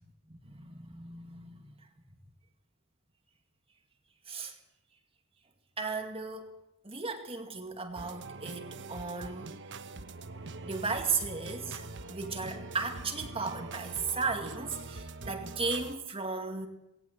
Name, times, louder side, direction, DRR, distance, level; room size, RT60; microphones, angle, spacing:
voice 1, 0.3-1.7 4.3-4.5 5.8-6.5 6.8-9.6 10.6-16.7, right 4 dB, 25° right, 2.1 m, -35 dB
sound 1, 8.0-16.0, right 3 dB, 55° right, 1.2 m, -43 dB
19.0 x 18.0 x 8.0 m
head